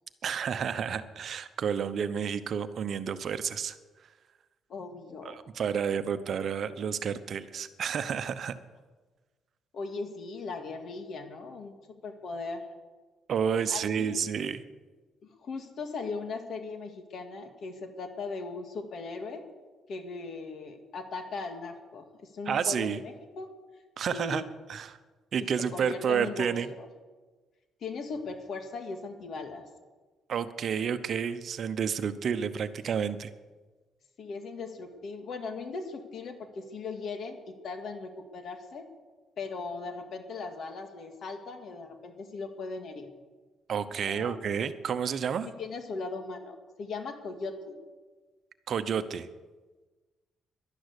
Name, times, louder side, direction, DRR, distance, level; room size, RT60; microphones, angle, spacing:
voice 1, 0.2-3.8 5.2-8.5 13.3-14.6 22.5-23.0 24.0-25.0 25.3-26.7 30.3-33.3 43.7-45.5 48.7-49.3, right 7 dB, 60° right, 12 dB, 0.9 m, -30 dB
voice 2, 4.7-5.4 9.7-11.7 12.0-12.7 13.7-14.2 15.4-19.4 19.9-23.5 24.1-24.4 25.4-26.9 27.8-29.7 34.2-38.9 39.4-43.1 44.0-44.4 45.6-47.8, left 4 dB, 60° left, 6 dB, 2.1 m, -38 dB
11.5 x 11.5 x 8.2 m, 1.3 s
cardioid pair, 90°, 0 cm